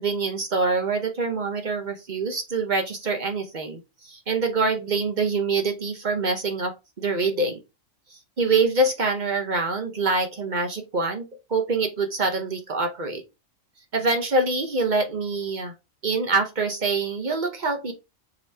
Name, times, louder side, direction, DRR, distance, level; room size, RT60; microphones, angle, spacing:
voice 1, 0.0-3.8 4.1-7.6 8.4-13.2 13.9-15.7 16.0-17.9, right 3 dB, 45° right, 5 dB, 0.7 m, -25 dB
4.8 x 2.9 x 3.3 m, 0.24 s
omnidirectional pair, 1.4 m